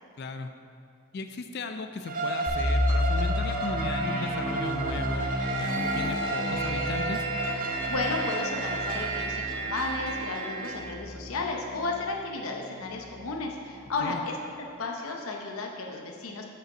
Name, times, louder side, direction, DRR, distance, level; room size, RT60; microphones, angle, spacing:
voice 1, 0.2-0.5 1.1-5.3 5.6-7.3 14.0-14.2, left 3 dB, 50° left, 7 dB, 0.4 m, -36 dB
Bowed string instrument, 2.0-9.2, right 3 dB, 40° right, 0.5 m, -33 dB
sound 1, 2.5-12.2 12.5-12.6 13.1-13.4, left 1 dB, 55° right, 1.4 m, -32 dB
sound 2, 5.4-10.8, right 3 dB, 75° right, 2.2 m, -33 dB
voice 2, 7.9-14.4 14.8-16.4, left 3 dB, 80° left, 1 dB, 0.8 m, -33 dB
7.6 x 5.4 x 6.0 m, 2.5 s
head